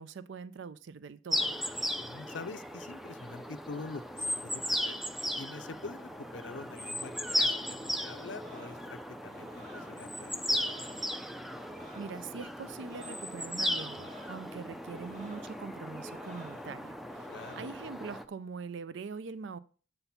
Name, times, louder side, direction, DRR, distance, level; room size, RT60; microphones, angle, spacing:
voice 1, 0.0-1.5 12.0-17.3 17.5-19.6, right 5 dB, 65° right, 0.4 m, -43 dB
sound 1, 1.3-18.2, equal, ahead, 0.4 m, -36 dB
voice 2, 2.0-5.0 5.3-10.9 17.3-17.6, left 4 dB, 60° left, 0.5 m, -45 dB
sound 2, 7.0-18.1, equal, 35° right, 2.0 m, -52 dB
7.9 x 5.9 x 5.7 m
head